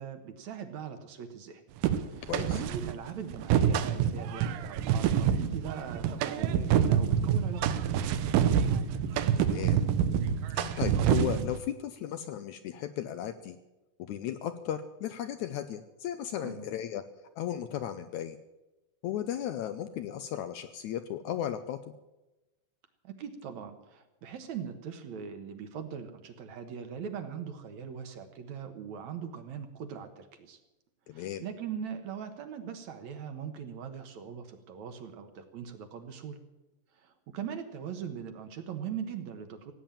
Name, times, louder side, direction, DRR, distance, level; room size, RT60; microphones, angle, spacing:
voice 1, 0.0-1.6 2.1-8.1 16.4-16.7 23.0-30.6 31.1-36.4 36.9-39.7, right 7 dB, 65° right, 7 dB, 2.3 m, -41 dB
sound 1, 1.8-2.9 3.3-11.6, right 8 dB, 90° right, 2.6 m, -27 dB
voice 2, 2.3-2.6 9.4-9.8 10.5-13.6 14.0-17.0 17.4-18.4 19.0-21.8 31.1-31.4, left 10 dB, 75° left, 10 dB, 1.8 m, -35 dB
17.0 x 8.9 x 8.9 m, 1.0 s
omnidirectional pair, 3.9 m